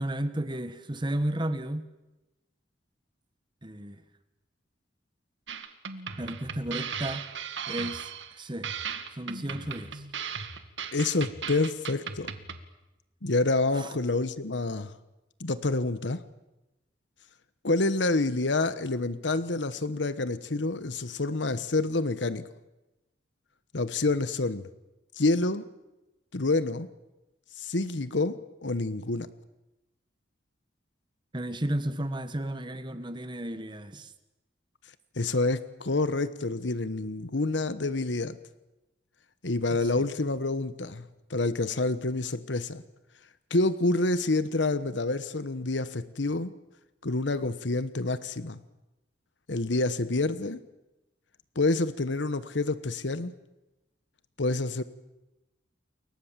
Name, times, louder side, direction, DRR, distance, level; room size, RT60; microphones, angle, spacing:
voice 1, 0.0-1.9 3.6-4.0 6.2-7.3 7.7-8.7 9.1-10.1 13.7-13.9 31.3-34.1 39.7-40.1, right 1 dB, 25° right, 11 dB, 1.5 m, -33 dB
sound 1, 5.5-12.7, right 6 dB, 90° right, 2.0 m, -37 dB
voice 2, 10.9-12.3 13.2-14.9 15.4-16.2 17.6-22.5 23.7-24.7 25.2-25.7 26.3-26.9 27.6-29.3 35.2-38.4 39.4-42.8 43.5-46.5 47.0-48.6 49.5-50.6 51.5-53.4 54.4-54.8, left 2 dB, 80° left, 13 dB, 1.2 m, -28 dB
29.5 x 22.5 x 7.5 m, 0.99 s
head